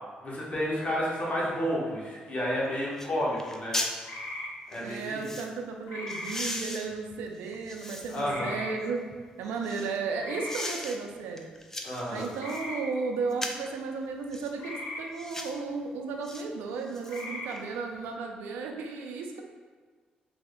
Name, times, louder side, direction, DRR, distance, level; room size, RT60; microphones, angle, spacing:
voice 1, 0.2-3.8 4.7-5.3 8.1-8.6 11.8-12.3, equal, 45° left, -6 dB, 1.1 m, -31 dB
sound 1, 2.5-2.6 3.0-3.1 3.4-4.0 4.7-5.5 6.1-8.3 8.8-10.0 10.5-11.0 11.4-12.7 13.3-13.7 14.3-14.5 15.1-15.6 16.2-16.4 16.8-17.6 18.0-18.1, left 1 dB, 15° left, 0.4 m, -38 dB
Frog Croak Ambient, 4.0-4.5 5.9-6.3 8.2-8.7 10.2-10.6 12.4-12.8 14.6-15.0 17.0-17.5, left 1 dB, 80° left, 0.5 m, -38 dB
voice 2, 4.8-9.0 9.4-11.5 12.1-19.4, right 4 dB, 90° right, 2 dB, 0.4 m, -34 dB
3.3 x 2.1 x 3.5 m, 1.5 s
supercardioid pair, 65°, 3 cm